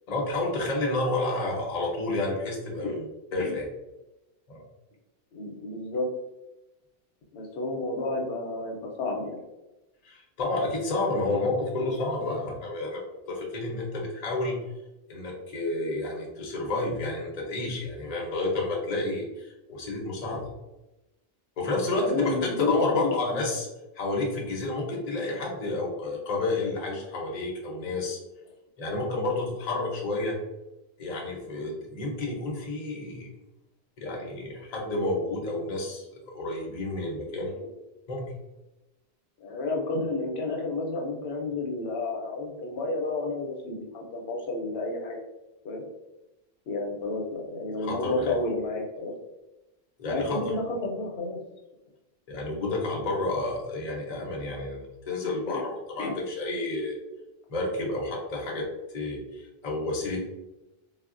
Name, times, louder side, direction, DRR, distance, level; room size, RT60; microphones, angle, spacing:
voice 1, 0.1-3.0 3.3-3.6 4.5-4.6 10.0-14.6 15.1-20.5 21.6-23.7 23.9-28.2 28.8-30.4 31.0-33.3 34.0-37.5 38.1-38.3 47.8-48.4 50.0-50.5 52.3-57.0 57.5-58.7 58.9-60.2, left 2 dB, 45° left, -1 dB, 0.7 m, -30 dB
voice 2, 5.3-6.1 7.3-9.4 21.9-23.5 37.4-37.7 39.4-45.2 45.6-45.8 46.7-49.1 50.1-51.4 55.4-55.6 56.0-56.1, left 2 dB, 90° left, 0 dB, 0.9 m, -30 dB
3.5 x 2.0 x 2.4 m, 0.99 s
omnidirectional pair, 1.0 m